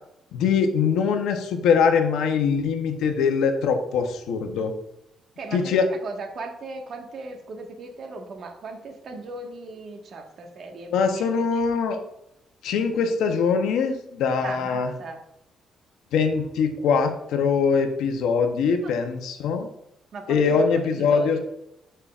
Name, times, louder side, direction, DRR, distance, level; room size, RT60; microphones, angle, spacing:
voice 1, 0.3-4.7 5.5-5.8 10.9-12.0 12.6-14.9 16.1-19.7 20.3-21.4, left 5 dB, 85° left, 5 dB, 0.9 m, -22 dB
voice 2, 5.4-11.5 14.4-15.2 18.8-19.0 20.1-21.4, right 3 dB, 55° right, 3 dB, 1.5 m, -38 dB
12.5 x 5.6 x 2.5 m, 0.82 s
cardioid pair, 90°, 0 cm